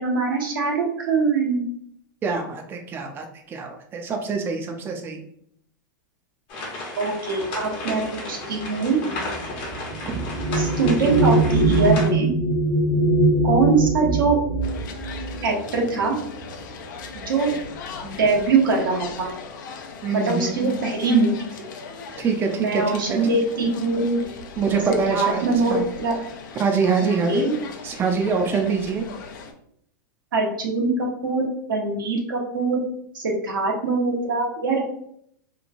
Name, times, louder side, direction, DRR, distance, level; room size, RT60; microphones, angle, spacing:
voice 1, 0.0-1.7 7.0-9.0 10.5-12.3 13.4-14.4 15.4-16.2 17.1-17.5 18.0-19.3 20.1-21.3 22.6-24.2 24.9-26.2 27.3-27.5 30.3-32.8 33.1-34.8, right 3 dB, 85° right, -1 dB, 0.9 m, -22 dB
voice 2, 2.2-5.2 10.1-10.2 20.0-20.8 22.2-23.0 24.6-25.4 25.7-25.8 26.6-27.5 27.8-29.0, right 5 dB, 20° right, 3 dB, 0.4 m, -24 dB
sound 1, 6.5-12.1, left 2 dB, 45° left, 0.9 m, -34 dB
sound 2, 7.7-16.6 17.5-17.7 18.0-18.6, right 2 dB, 20° left, 0.7 m, -23 dB
sound 3, 14.6-29.5, left 5 dB, 70° left, 0.5 m, -39 dB
3.0 x 2.2 x 2.5 m, 0.68 s
hypercardioid pair, 120°, 11 cm